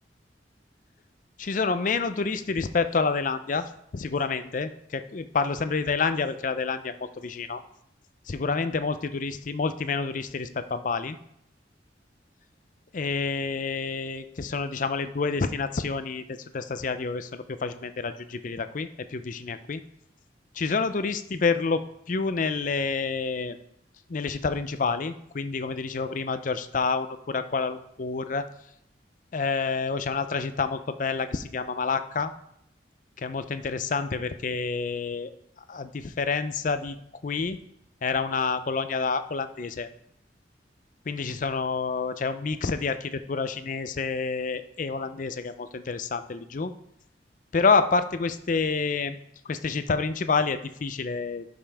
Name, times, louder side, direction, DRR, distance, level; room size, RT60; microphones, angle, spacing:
voice 1, 1.4-7.6 8.3-11.2 12.9-19.8 20.6-23.6 24.1-28.5 29.3-32.3 33.2-35.3 35.7-37.0 37.2-37.6 38.0-39.9 41.1-46.7 47.5-49.2 49.5-51.5, left 4 dB, 45° left, 11 dB, 0.5 m, -28 dB
11.5 x 5.5 x 3.4 m, 0.74 s
head